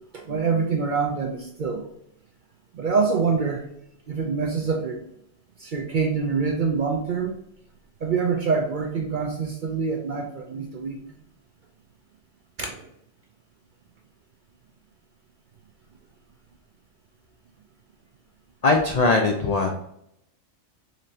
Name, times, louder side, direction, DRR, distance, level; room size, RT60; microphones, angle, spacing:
voice 1, 0.1-1.8 2.7-3.6 4.1-5.0 5.6-7.4 8.0-11.0 12.6-12.7, right 5 dB, 60° right, 2 dB, 0.5 m, -25 dB
voice 2, 18.6-19.7, left 3 dB, 65° left, 2 dB, 0.4 m, -20 dB
4.1 x 3.1 x 2.7 m, 0.75 s
omnidirectional pair, 1.3 m